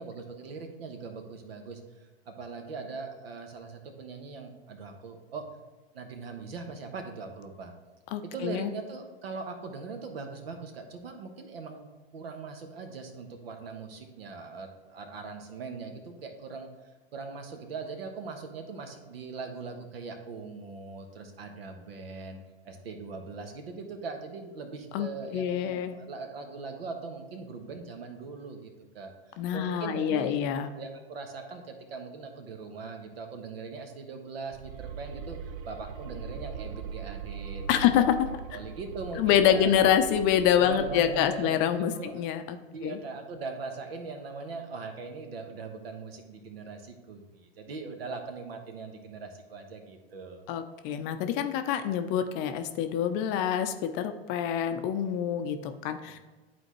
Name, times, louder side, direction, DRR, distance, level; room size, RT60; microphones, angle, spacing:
voice 1, 0.0-5.4 5.9-7.7 8.2-16.7 17.1-22.4 22.6-30.5 30.7-38.0 38.5-39.8 40.6-42.2 42.7-50.4, right 4 dB, 70° right, 5 dB, 1.3 m, -40 dB
voice 2, 8.1-8.7 24.9-26.0 29.4-30.7 37.7-38.0 39.2-42.6 42.8-43.0 50.5-56.2, left 9 dB, 35° left, 8 dB, 0.6 m, -26 dB
sound 1, 34.5-41.8, right 6 dB, 35° right, 0.4 m, -41 dB
11.0 x 4.3 x 3.1 m, 1.3 s
hypercardioid pair, 100°, 32 cm